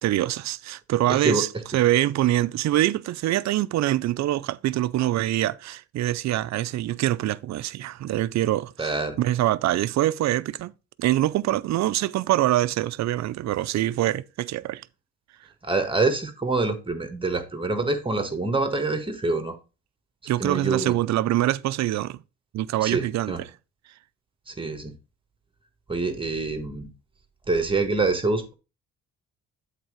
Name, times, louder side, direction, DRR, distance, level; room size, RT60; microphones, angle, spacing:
voice 1, 0.0-10.7 11.0-14.8 20.3-22.2 22.5-23.5, right 14 dB, 65° right, 0.5 m, -24 dB
voice 2, 1.1-1.4 8.8-9.2 15.6-19.6 20.4-20.9 22.8-23.4 24.5-24.9 25.9-26.9 27.5-28.5, right 3 dB, 15° right, 1.5 m, -26 dB
8.0 x 4.1 x 4.9 m
cardioid pair, 90°, 30 cm